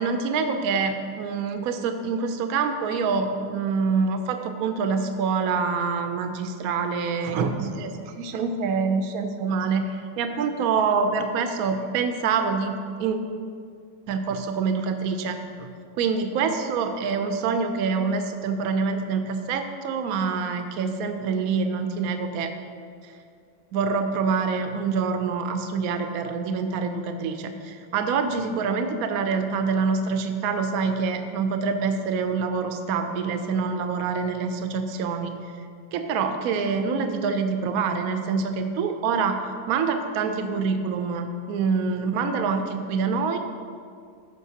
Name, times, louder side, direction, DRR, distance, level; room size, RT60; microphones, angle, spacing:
voice 1, 0.0-9.9 10.2-13.2 14.1-15.7 16.0-22.5 23.0-23.1 23.7-35.4 35.9-39.4 39.7-43.4, right 5 dB, 85° right, 6 dB, 0.7 m, -26 dB
14.0 x 5.2 x 2.8 m, 2.3 s
omnidirectional pair, 2.1 m